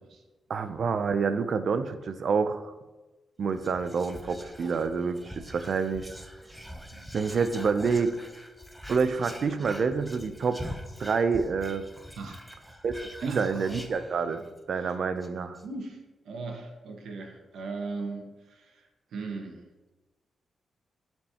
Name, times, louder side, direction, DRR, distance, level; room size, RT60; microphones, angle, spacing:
voice 1, 0.5-2.7 3.4-6.1 7.1-8.1 8.9-10.6 11.0-11.8 12.8-15.6, right 5 dB, 55° right, 10 dB, 0.4 m, -28 dB
Whispering, 3.5-14.6 14.9-15.0 15.2-15.6, equal, 5° right, 0.6 m, -44 dB
voice 2, 12.2-12.8 13.2-13.8 14.7-14.9 15.6-16.0 16.2-19.7, right 3 dB, 85° right, 2 dB, 1.1 m, -39 dB
13.0 x 4.4 x 2.9 m, 1.2 s
wide cardioid pair, 145°, 0 cm